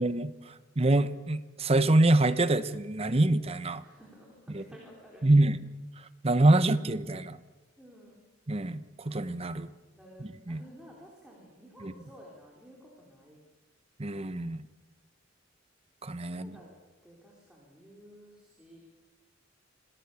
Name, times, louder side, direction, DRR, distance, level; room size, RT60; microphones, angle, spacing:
voice 1, 0.0-3.8 4.5-4.6 5.2-5.6 6.0-7.4 8.5-9.7 10.2-10.6 11.8-11.9 14.0-14.6 16.0-16.6, right 2 dB, 30° right, 13 dB, 0.9 m, -26 dB
voice 2, 3.8-5.2 7.8-8.2 9.9-13.4 16.3-16.7 17.0-18.8, equal, 5° right, -3 dB, 4.3 m, -53 dB
27.0 x 18.0 x 7.0 m, 1.3 s
head